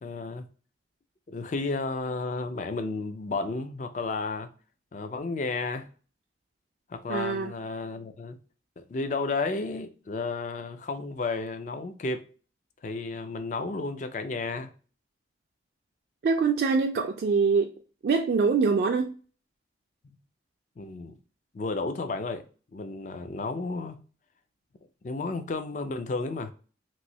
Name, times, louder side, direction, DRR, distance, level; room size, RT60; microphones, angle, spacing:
voice 1, 0.0-0.4 1.3-4.5 4.9-5.9 6.9-8.4 8.8-12.3 12.8-14.7 20.0-20.2 20.8-21.2 21.5-22.4 22.7-24.0 25.0-26.5, left 3 dB, 45° left, 0.4 m, -32 dB
voice 2, 7.1-7.5 16.2-17.7 18.0-19.1, right 5 dB, 60° right, 0.3 m, -24 dB
3.0 x 2.6 x 2.7 m
head